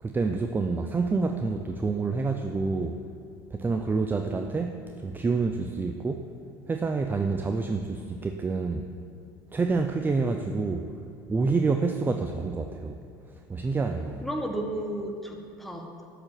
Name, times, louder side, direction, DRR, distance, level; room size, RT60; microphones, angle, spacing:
voice 1, 0.0-3.0 3.5-6.3 6.7-8.9 9.5-10.9 11.3-13.0 13.5-14.3, right 4 dB, 20° right, 5 dB, 0.5 m, -28 dB
voice 2, 14.2-16.1, right 1 dB, ahead, 2 dB, 1.2 m, -33 dB
7.7 x 4.9 x 7.4 m, 2.5 s
supercardioid pair, 85°, 11 cm